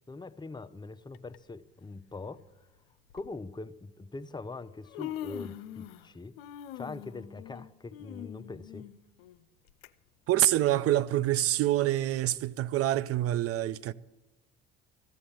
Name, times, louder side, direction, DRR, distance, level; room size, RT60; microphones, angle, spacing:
voice 1, 0.1-2.4 3.1-6.4 6.7-8.9, left 3 dB, 15° left, 0.7 m, -42 dB
Human voice, 1.1-1.4 2.4-2.5 3.1-3.3 4.3-4.4 4.7-6.1 6.4-9.9 10.3-10.4 11.2-11.3, left 12 dB, 90° left, 0.6 m, -43 dB
voice 2, 10.3-13.9, right 13 dB, 50° right, 0.6 m, -26 dB
14.5 x 7.7 x 8.7 m
supercardioid pair, 70°, 29 cm